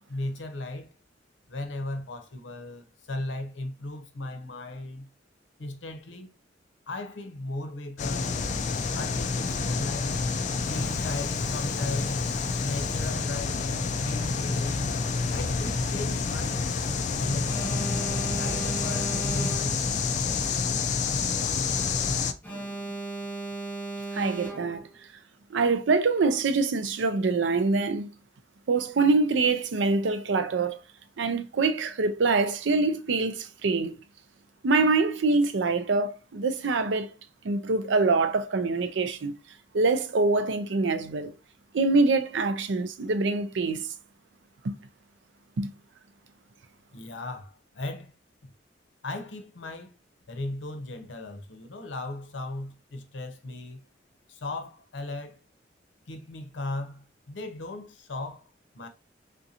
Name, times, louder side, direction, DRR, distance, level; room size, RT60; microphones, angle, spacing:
voice 1, 0.1-0.9 1.5-5.1 5.6-6.3 6.9-8.4 8.9-10.2 10.7-13.7 14.0-15.0 15.3-16.7 17.2-17.9 18.3-20.3 46.9-48.1 48.4-48.5 49.0-49.9 50.3-53.9 54.3-55.4 56.1-58.9, left 2 dB, 85° left, 0.7 m, -37 dB
sound 1, 8.0-22.3, left 4 dB, 40° left, 0.3 m, -28 dB
Alarm, 17.4-20.0 22.4-25.0, right 2 dB, 10° left, 0.7 m, -36 dB
voice 2, 24.1-24.9 25.5-28.1 28.7-30.8 31.2-34.0 34.6-37.1 37.4-39.3 39.7-41.3 41.7-43.9 44.6-44.8 45.6-45.7, right 3 dB, 80° right, 0.5 m, -25 dB
3.7 x 2.5 x 2.8 m
head